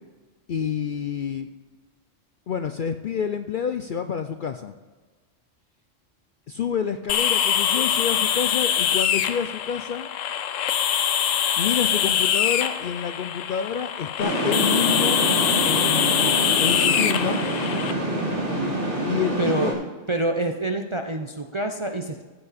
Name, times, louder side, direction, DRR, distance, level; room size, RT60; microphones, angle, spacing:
voice 1, 0.5-1.5 2.5-4.7 6.5-10.1 11.6-15.2 15.6-17.4 19.1-19.8, left 7 dB, 60° left, 8 dB, 0.5 m, -28 dB
sound 1, 7.1-17.9, left 9 dB, 90° left, 1.0 m, -23 dB
sound 2, 14.2-19.7, right 1 dB, 60° right, 3.2 m, -26 dB
voice 2, 19.4-19.7 20.1-22.2, right 2 dB, 35° right, 5 dB, 0.5 m, -26 dB
14.5 x 8.0 x 4.1 m, 1.4 s
omnidirectional pair, 1.3 m